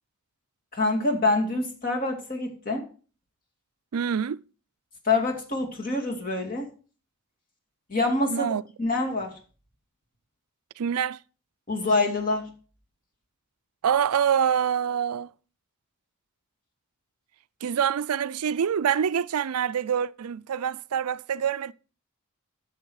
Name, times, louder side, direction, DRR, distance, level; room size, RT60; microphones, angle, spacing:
voice 1, 0.7-2.9 5.0-6.7 7.9-8.5 8.8-9.4 11.7-12.5, left 2 dB, 40° left, 2.4 m, -26 dB
voice 2, 3.9-4.4 8.3-8.6 10.8-11.2 13.8-15.3 17.6-21.7, right 8 dB, 85° right, 0.4 m, -26 dB
12.0 x 7.1 x 4.8 m
head